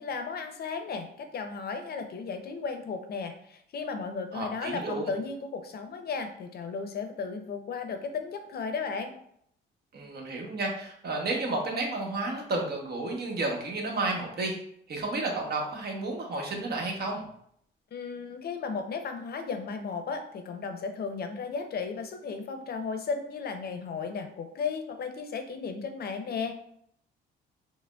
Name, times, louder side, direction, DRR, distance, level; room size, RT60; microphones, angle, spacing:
voice 1, 0.0-9.1 17.9-26.5, left 5 dB, 50° left, 7 dB, 0.5 m, -35 dB
voice 2, 4.3-5.1 9.9-14.5 14.9-17.3, right 2 dB, 55° right, 0 dB, 1.0 m, -31 dB
4.8 x 2.0 x 2.3 m, 0.69 s
cardioid pair, 90°, 20 cm